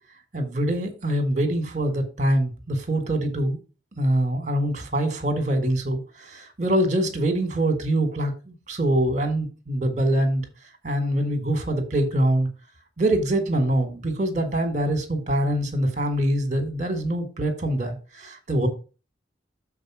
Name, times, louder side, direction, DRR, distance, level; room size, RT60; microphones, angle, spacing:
voice 1, 0.3-3.6 4.0-10.4 10.8-12.5 13.0-18.7, right 1 dB, 40° right, 1.6 m, -24 dB
7.1 x 4.1 x 6.1 m
head